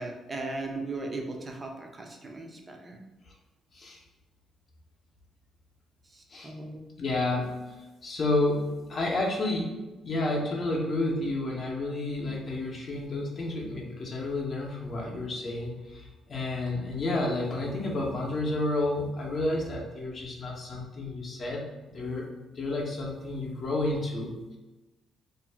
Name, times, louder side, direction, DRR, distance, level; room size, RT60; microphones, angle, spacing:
voice 1, 0.0-3.0 6.1-6.8, right 2 dB, 30° right, 2 dB, 0.5 m, -37 dB
voice 2, 7.0-9.7 10.0-21.6 21.9-22.3 22.6-24.6, left 2 dB, 45° left, -2 dB, 0.6 m, -30 dB
2.4 x 2.1 x 3.2 m, 1.1 s
cardioid pair, 90°, 0 cm